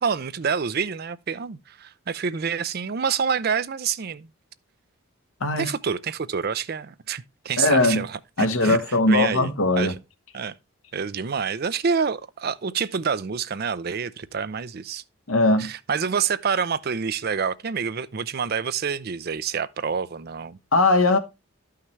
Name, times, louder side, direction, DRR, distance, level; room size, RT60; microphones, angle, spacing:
voice 1, 0.0-4.3 5.6-8.8 9.1-9.5 9.8-9.9 10.3-10.6 10.9-15.0 15.6-20.6, right 6 dB, 45° right, 0.4 m, -27 dB
voice 2, 7.6-8.0 8.4-9.9 15.3-15.7 20.7-21.2, left 2 dB, 70° left, 1.1 m, -20 dB
11.5 x 5.8 x 3.2 m
head